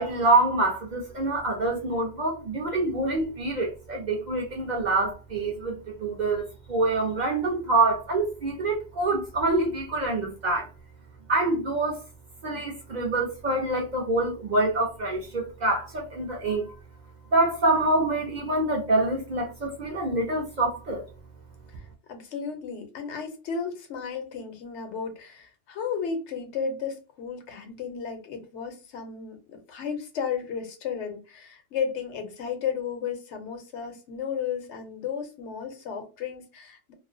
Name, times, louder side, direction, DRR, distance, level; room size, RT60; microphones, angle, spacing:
voice 1, 0.0-10.7 11.3-12.0 12.4-16.7 17.3-21.0, right 2 dB, 55° right, 0.5 m, -26 dB
voice 2, 22.1-36.9, left 6 dB, 80° left, 0.9 m, -33 dB
2.3 x 2.1 x 2.5 m
omnidirectional pair, 1.2 m